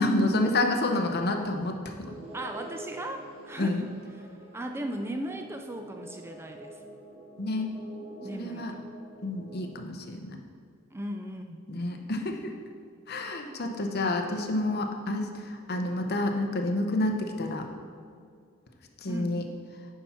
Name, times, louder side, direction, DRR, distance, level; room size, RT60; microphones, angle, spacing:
voice 1, 0.0-2.1 3.6-3.8 7.4-7.7 8.3-8.7 9.2-10.4 11.7-12.5 13.1-17.7 19.0-19.4, left 2 dB, 50° left, 4 dB, 0.8 m, -29 dB
sound 1, 2.1-9.6, right 2 dB, 30° right, 1.5 m, -46 dB
voice 2, 2.3-6.8 8.0-8.8 10.9-11.6 13.1-13.2 19.1-19.4, right 1 dB, 10° right, 5 dB, 0.4 m, -38 dB
9.5 x 5.9 x 4.4 m, 2.2 s
head